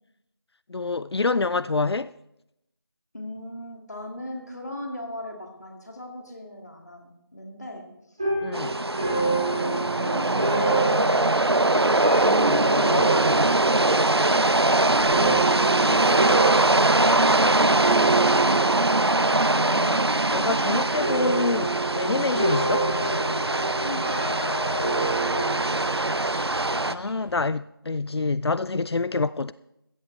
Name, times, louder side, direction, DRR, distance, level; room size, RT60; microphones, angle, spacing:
voice 1, 0.7-2.1 8.4-8.7 12.2-13.1 15.1-15.4 19.5-22.9 26.8-29.5, left 3 dB, 90° left, 0.4 m, -27 dB
voice 2, 3.1-8.2 9.1-12.0 15.0-18.7 23.8-24.6 25.0-25.8, left 1 dB, 40° left, 1.9 m, -39 dB
sound 1, 8.2-19.7 19.9-20.5 21.0-26.3, right 3 dB, 15° right, 1.7 m, -29 dB
sound 2, 8.5-26.9, right 2 dB, 80° right, 0.7 m, -22 dB
sound 3, 13.9-27.4, equal, 55° right, 6.0 m, -46 dB
15.5 x 13.5 x 3.1 m
figure-of-eight pair, 175°, 13 cm